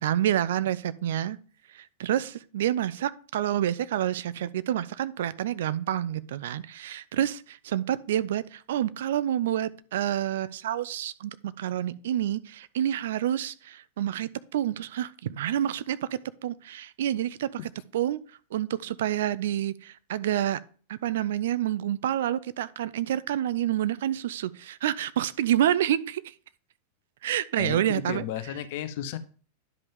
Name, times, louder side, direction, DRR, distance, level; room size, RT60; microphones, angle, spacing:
voice 1, 0.0-1.4 1.7-17.5 17.9-18.2 18.5-20.6 20.9-26.3 27.2-28.2, right 11 dB, 60° right, 16 dB, 0.4 m, -28 dB
voice 2, 27.6-29.2, left 10 dB, 50° left, 13 dB, 0.7 m, -33 dB
10.5 x 5.2 x 3.6 m, 0.42 s
figure-of-eight pair, 90°, 0 cm